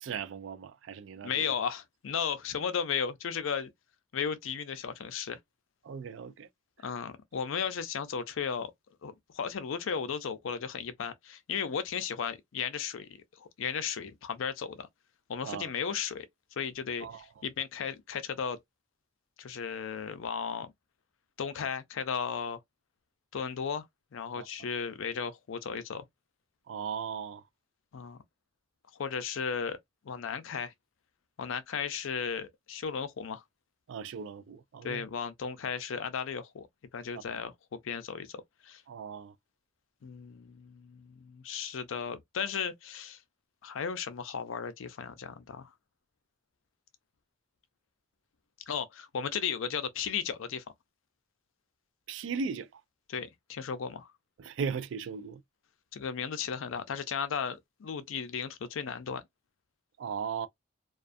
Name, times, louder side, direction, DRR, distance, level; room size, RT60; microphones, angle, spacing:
voice 1, 0.0-1.4 5.8-6.5 15.4-15.7 17.0-17.2 24.3-24.5 26.7-27.4 33.9-35.0 38.9-39.3 52.1-52.8 54.4-55.4 60.0-60.5, right 6 dB, 65° right, 0.3 m, -37 dB
voice 2, 1.2-3.7 4.1-5.4 6.8-8.7 9.0-14.9 15.3-16.3 16.6-18.6 19.4-20.7 21.4-22.6 23.3-23.9 24.1-26.0 27.9-28.2 28.9-29.8 30.1-30.7 31.4-33.4 34.8-36.7 36.9-38.8 40.0-43.2 43.6-45.7 48.7-50.6 53.1-54.1 55.9-59.2, left 6 dB, 75° left, 0.4 m, -35 dB
2.4 x 2.3 x 2.4 m
head